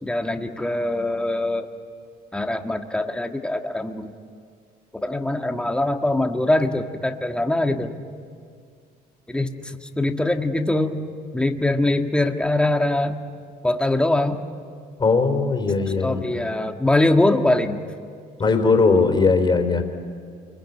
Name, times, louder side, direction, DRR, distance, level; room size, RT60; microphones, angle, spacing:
voice 1, 0.0-1.7 2.3-4.1 4.9-7.9 9.3-11.0 11.3-13.2 13.6-14.5 16.0-17.8, left 1 dB, 5° left, 5 dB, 1.6 m, -22 dB
voice 2, 15.0-16.3 18.4-19.8, left 4 dB, 25° left, 5 dB, 3.6 m, -19 dB
28.0 x 22.0 x 9.4 m, 2.1 s
cardioid pair, 110°, 17 cm